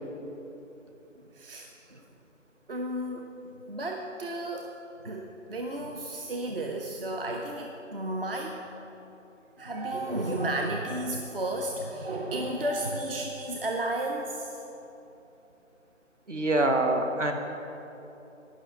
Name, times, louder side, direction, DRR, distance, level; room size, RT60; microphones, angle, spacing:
voice 1, 1.3-2.0 2.7-3.3 3.7-4.7 5.0-8.6 9.6-14.6, right 1 dB, 45° right, 2 dB, 0.7 m, -33 dB
voice 2, 16.3-17.3, right 2 dB, 65° right, 4 dB, 1.4 m, -25 dB
11.0 x 5.9 x 7.4 m, 3.0 s
figure-of-eight pair, 155°, 38 cm